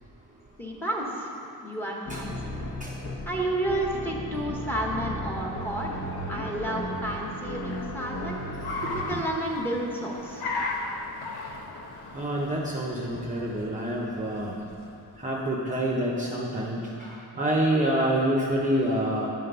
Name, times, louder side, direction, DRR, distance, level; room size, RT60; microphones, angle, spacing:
voice 1, 0.6-1.3 1.6-2.3 3.3-6.0 6.3-8.4 8.9-10.5, right 1 dB, 5° left, -2 dB, 0.9 m, -31 dB
sound 1, 2.1-9.0, left 1 dB, 40° left, 1.0 m, -35 dB
Car, 5.1-15.3, left 3 dB, 90° left, 0.9 m, -38 dB
voice 2, 12.1-14.5 15.2-19.3, right 1 dB, 20° right, -3 dB, 0.6 m, -27 dB
10.5 x 3.7 x 6.7 m, 2.7 s
wide cardioid pair, 170°, 38 cm